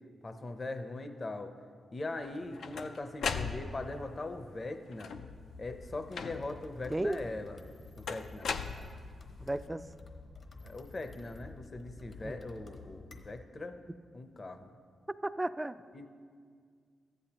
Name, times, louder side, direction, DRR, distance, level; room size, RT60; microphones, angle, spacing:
voice 1, 0.2-1.5 1.9-5.1 5.6-7.6 8.0-8.5 10.6-13.8 14.1-14.7 15.9-16.1, left 2 dB, 40° left, 8 dB, 0.7 m, -40 dB
sound 1, 2.2-4.0 4.9-5.4 6.1-6.7 8.1-9.3, left 5 dB, 75° left, 0.4 m, -38 dB
sound 2, 5.1-13.4, left 3 dB, 55° left, 1.1 m, -51 dB
voice 2, 6.9-7.2 9.4-9.9 12.2-12.4 15.1-15.8, right 1 dB, 15° right, 12 dB, 0.4 m, -34 dB
14.0 x 10.0 x 2.9 m, 2.1 s
cardioid pair, 60°, 0 cm